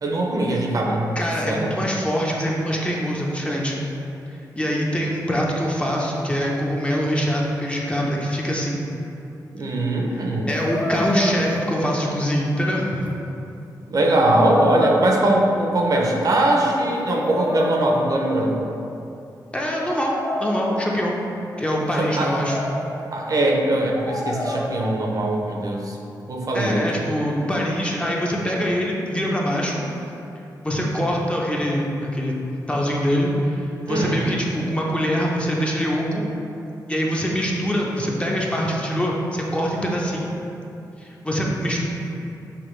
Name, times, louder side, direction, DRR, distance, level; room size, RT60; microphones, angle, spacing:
voice 1, 0.0-1.7 9.5-10.5 13.9-18.7 21.7-22.3 23.1-26.0 26.3-27.0 33.9-34.3, right 1 dB, 50° right, -1 dB, 0.6 m, -21 dB
voice 2, 1.2-3.8 4.6-8.8 10.5-13.0 19.5-20.1 20.4-21.1 21.6-22.6 26.5-29.8 30.6-32.3 32.7-36.2 36.9-40.3 41.0-41.8, equal, 15° left, -3 dB, 0.6 m, -24 dB
sound 1, 10.5-12.2 13.0-13.1 14.2-15.7 16.7-18.9 19.9-21.1 21.8-23.1 23.9-24.9, left 1 dB, 60° left, 1.4 m, -29 dB
5.9 x 2.7 x 3.1 m, 2.8 s
cardioid pair, 95°, 8 cm